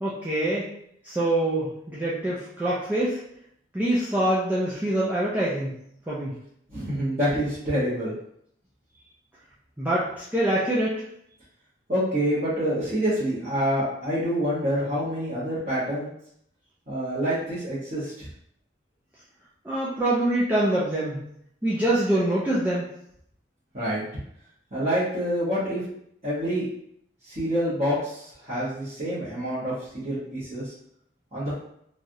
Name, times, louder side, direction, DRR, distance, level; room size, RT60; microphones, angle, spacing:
voice 1, 0.0-0.7 1.0-3.2 3.7-5.7 6.1-6.4 9.8-11.0 19.6-21.2 21.6-22.8, right 1 dB, 10° right, -8 dB, 0.4 m, -25 dB
voice 2, 6.7-8.1 11.9-16.1 16.9-18.3 23.7-24.0 24.7-25.8 26.2-26.6 27.2-30.7 31.3-31.5, equal, 35° right, -14 dB, 1.1 m, -27 dB
3.2 x 2.4 x 2.6 m, 0.71 s
head